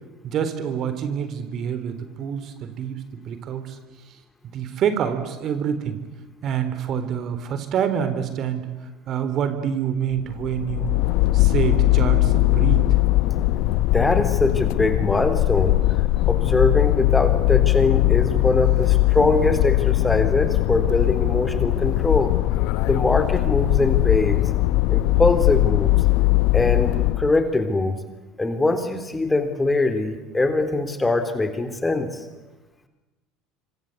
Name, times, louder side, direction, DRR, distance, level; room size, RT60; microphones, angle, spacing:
voice 1, 0.2-3.8 4.5-6.0 6.4-8.7 9.1-10.9 11.3-12.9, right 8 dB, 50° right, 10 dB, 3.8 m, -26 dB
sound 1, 10.1-27.4, left 18 dB, 60° left, 0.9 m, -20 dB
voice 2, 13.9-15.7 16.3-22.3 22.9-24.4 24.9-25.9 26.5-28.0 28.4-32.1, left 2 dB, 15° left, 8 dB, 3.7 m, -22 dB
26.5 x 25.0 x 8.2 m, 1.1 s
hypercardioid pair, 70°, 0 cm